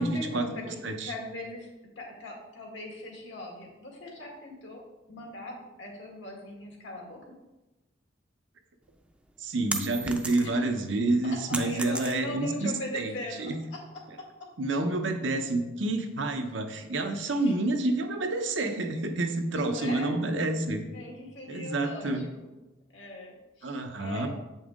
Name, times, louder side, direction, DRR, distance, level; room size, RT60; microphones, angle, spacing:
voice 1, 0.0-1.7 2.0-4.8 5.1-7.2 10.4-10.7 11.2-13.8 17.2-17.5 19.5-20.1 20.9-22.5 22.9-24.3, left 1 dB, 85° left, 0 dB, 1.9 m, -40 dB
sound 1, 8.9-10.7 11.1-12.5, right 2 dB, 5° right, 0.5 m, -35 dB
voice 2, 9.4-13.1 13.4-13.6 14.6-20.8 21.5-22.2 23.6-24.3, right 2 dB, 80° right, 5 dB, 0.8 m, -28 dB
8.0 x 5.6 x 3.7 m, 1.0 s
head